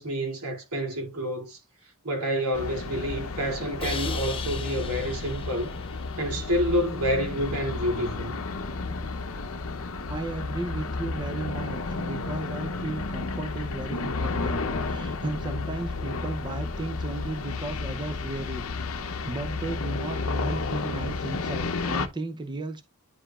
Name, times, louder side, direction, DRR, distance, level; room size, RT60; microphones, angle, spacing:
voice 1, 0.0-1.6 2.0-5.7 6.2-8.3, equal, 85° right, 2.7 m, -28 dB
sound 1, 2.5-22.1, left 3 dB, 65° left, 0.8 m, -32 dB
Crash cymbal, 3.8-6.9, left 6 dB, 25° left, 0.7 m, -39 dB
voice 2, 10.1-18.6 19.0-22.8, right 2 dB, 20° right, 0.6 m, -35 dB
9.9 x 4.9 x 2.4 m
head